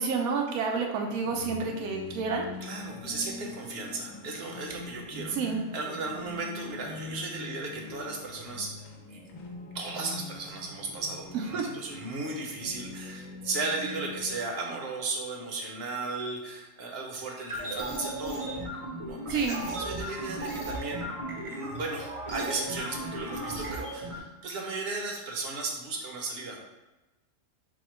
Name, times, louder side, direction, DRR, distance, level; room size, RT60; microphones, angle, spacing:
voice 1, 0.0-2.5 5.3-5.6 11.5-11.6 19.3-19.6, right 5 dB, 90° right, 1 dB, 1.1 m, -29 dB
sound 1, 1.1-14.4, left 3 dB, 70° left, 1.0 m, -43 dB
voice 2, 2.6-8.7 9.1-9.2 9.7-18.6 19.1-21.1 21.5-26.6, right 3 dB, 55° right, 1 dB, 0.8 m, -35 dB
sound 2, 17.4-24.2, right 1 dB, 35° right, 0.5 m, -36 dB
4.3 x 2.2 x 4.3 m, 1.0 s
omnidirectional pair, 1.5 m